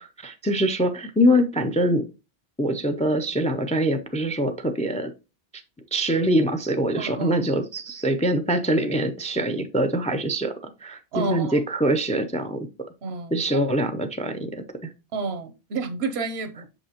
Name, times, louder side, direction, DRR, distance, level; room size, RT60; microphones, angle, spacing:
voice 1, 0.0-2.0 2.6-5.1 5.5-5.6 5.9-12.6 13.3-14.9, equal, 10° left, 0.3 m, -24 dB
voice 2, 6.9-7.5 11.1-11.6 13.0-13.4 15.1-16.7, right 4 dB, 85° right, 1.0 m, -30 dB
6.5 x 5.3 x 2.9 m
omnidirectional pair, 1.0 m